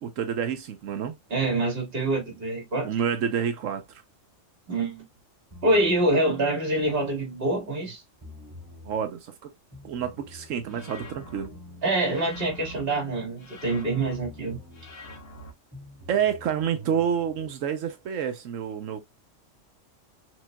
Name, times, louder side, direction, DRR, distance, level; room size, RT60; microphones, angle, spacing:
voice 1, 0.0-1.2 2.8-4.0 8.8-9.5 9.8-11.5 16.1-19.0, right 8 dB, 85° right, 1.1 m, -28 dB
voice 2, 1.3-2.9 4.7-5.0 5.6-8.0 11.8-14.6, right 2 dB, 45° right, 2.2 m, -25 dB
sound 1, 5.5-7.8 8.2-9.0 9.7-13.8 14.2-15.0 15.7-17.5, left 1 dB, 20° right, 2.4 m, -47 dB
sound 2, 10.7-11.5 12.0-12.8 13.4-14.2 14.7-15.5, left 1 dB, 50° left, 1.4 m, -44 dB
6.2 x 3.7 x 2.2 m
omnidirectional pair, 1.3 m